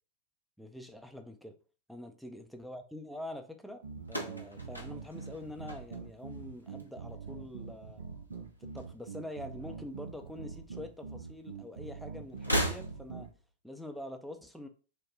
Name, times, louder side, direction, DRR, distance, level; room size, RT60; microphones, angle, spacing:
voice 1, 0.6-1.6 1.9-3.8 4.1-8.0 8.6-13.3 13.6-14.7, left 1 dB, ahead, 5 dB, 0.5 m, -45 dB
sound 1, 3.8-13.3, right 5 dB, 70° right, 0.6 m, -44 dB
sound 2, 4.0-6.4 6.7-7.3 8.3-9.4 9.6-9.7 10.9-11.0 12.3-13.4, right 1 dB, 90° left, 0.6 m, -36 dB
3.2 x 2.1 x 3.7 m, 0.37 s
figure-of-eight pair, 90°, 0 cm